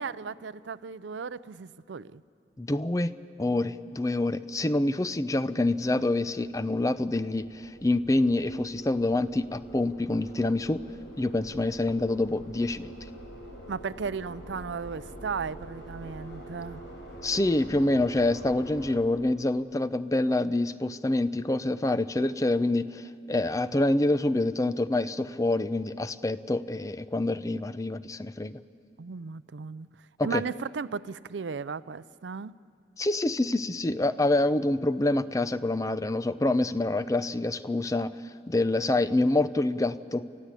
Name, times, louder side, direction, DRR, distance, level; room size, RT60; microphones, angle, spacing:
voice 1, 0.0-2.2 13.7-16.9 29.0-29.9 30.2-32.5, right 5 dB, 85° right, 17 dB, 0.5 m, -35 dB
voice 2, 2.6-3.1 3.4-10.8 11.2-12.9 17.2-28.6 30.2-30.4 33.0-38.1 38.5-40.2, left 2 dB, 20° left, 13 dB, 0.5 m, -26 dB
sound 1, 5.7-19.0, equal, 90° left, 5.0 m, -46 dB
29.0 x 14.5 x 8.3 m, 2.5 s
head